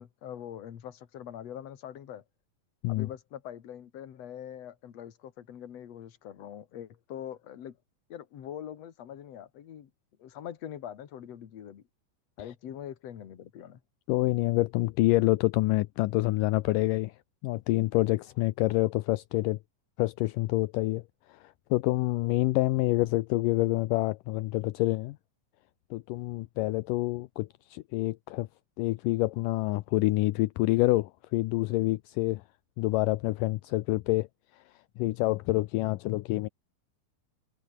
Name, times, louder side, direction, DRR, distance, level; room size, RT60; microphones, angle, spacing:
voice 1, 0.0-2.2 2.9-7.8 8.1-9.9 10.2-11.8 12.4-13.8, left 10 dB, 55° left, 2.7 m, -43 dB
voice 2, 14.1-19.6 20.0-21.0 21.3-25.2 25.9-28.5 28.8-32.4 32.8-34.3 34.5-34.6 35.0-36.5, left 19 dB, 80° left, 2.2 m, -27 dB
omnidirectional pair, 4.0 m